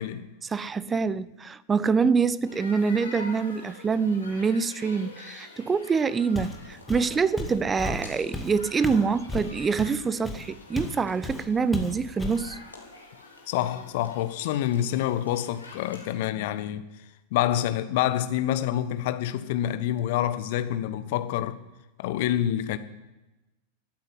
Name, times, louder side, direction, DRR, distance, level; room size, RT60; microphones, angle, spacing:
voice 1, 0.4-12.6, right 5 dB, 15° right, 0.7 m, -25 dB
sound 1, 2.4-16.1, left 3 dB, 80° left, 3.5 m, -46 dB
Walk footsteps, 6.3-6.6 6.9-11.0 11.2-11.5 11.7-12.5, left 3 dB, 10° left, 2.2 m, -34 dB
voice 2, 13.5-16.8 17.3-21.6 22.0-22.8, left 12 dB, 50° left, 1.2 m, -27 dB
13.5 x 9.1 x 9.7 m
figure-of-eight pair, 90°, 0 cm